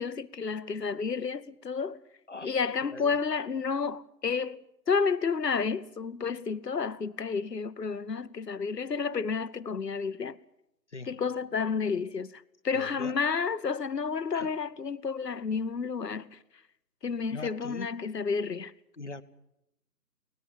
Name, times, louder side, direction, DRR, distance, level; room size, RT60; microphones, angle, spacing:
voice 1, 0.0-2.0 2.4-10.4 11.1-16.4 17.0-18.7, left 5 dB, 75° left, 0.9 m, -31 dB
voice 2, 10.9-11.2 12.7-13.2 14.3-14.5 17.3-18.0 19.0-19.2, left 3 dB, 45° left, 0.9 m, -41 dB
23.5 x 19.0 x 7.0 m
figure-of-eight pair, 160°, 49 cm